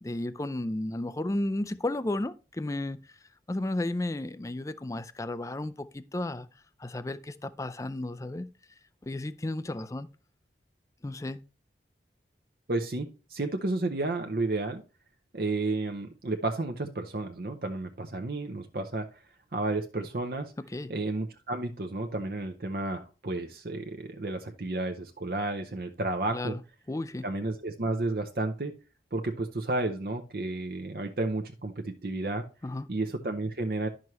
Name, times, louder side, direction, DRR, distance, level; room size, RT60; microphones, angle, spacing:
voice 1, 0.0-3.0 3.5-6.5 6.8-8.5 9.0-10.1 11.0-11.4 20.7-20.9 26.3-26.6 26.9-27.3 32.6-32.9, left 1 dB, 20° left, 0.4 m, -33 dB
voice 2, 12.7-14.8 15.3-19.1 19.5-20.5 20.9-26.6 27.2-28.7 29.1-32.4 32.9-33.9, right 2 dB, 55° right, 0.7 m, -32 dB
11.0 x 6.2 x 3.1 m
head